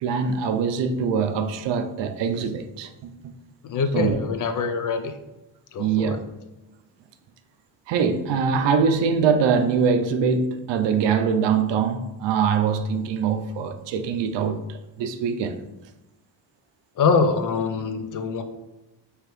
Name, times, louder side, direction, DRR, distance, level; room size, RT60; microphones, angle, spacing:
voice 1, 0.0-3.1 3.9-4.2 5.8-6.2 7.9-14.6 15.0-15.6, right 6 dB, 80° right, 0.6 m, -23 dB
voice 2, 3.6-5.1 5.7-6.2 17.0-18.4, left 4 dB, 45° left, 0.5 m, -24 dB
4.8 x 3.1 x 3.1 m
cardioid pair, 100°, 43 cm